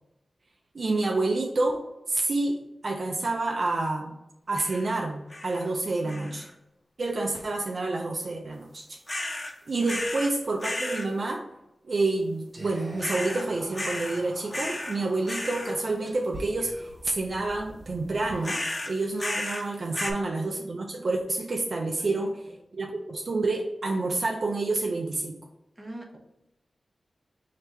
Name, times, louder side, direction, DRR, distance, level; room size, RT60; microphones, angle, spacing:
voice 1, 0.7-2.6 2.8-4.1 4.5-6.5 7.0-9.0 9.7-11.4 11.8-18.6 18.9-22.3 22.7-25.4, right 2 dB, 65° right, 1 dB, 0.5 m, -28 dB
sound 1, 4.5-4.9 5.3-5.7 6.1-6.5 9.1-9.5 9.9-10.3 10.6-11.1 13.0-13.5 13.8-14.2 14.5-15.0 15.3-15.7 18.4-19.7 19.9-20.1, left 1 dB, 30° left, 0.6 m, -33 dB
voice 2, 6.0-6.4 9.7-10.0 19.8-20.3 21.9-22.6 25.8-26.2, right 1 dB, 25° right, 0 dB, 0.9 m, -46 dB
Whispering, 12.5-19.0, right 1 dB, 45° right, 1.1 m, -46 dB
3.5 x 2.8 x 4.3 m, 0.89 s
wide cardioid pair, 70°, 0 cm